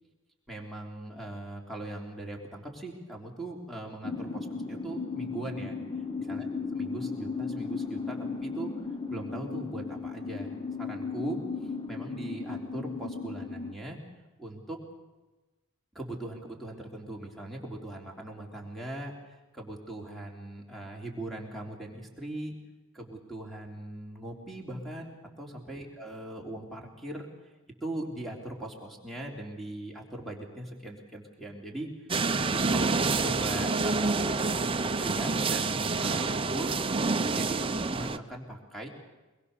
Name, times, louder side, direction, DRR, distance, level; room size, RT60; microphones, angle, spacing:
voice 1, 0.5-5.8 6.3-6.5 6.7-8.7 9.1-11.4 11.9-14.0 14.4-14.8 15.9-22.5 22.9-27.3 27.8-38.9, right 1 dB, ahead, 0 dB, 3.5 m, -40 dB
sound 1, 4.0-13.7, left 4 dB, 20° left, 0.8 m, -36 dB
sound 2, 32.1-38.2, right 3 dB, 25° right, 0.8 m, -28 dB
24.0 x 22.0 x 6.8 m, 1.1 s
head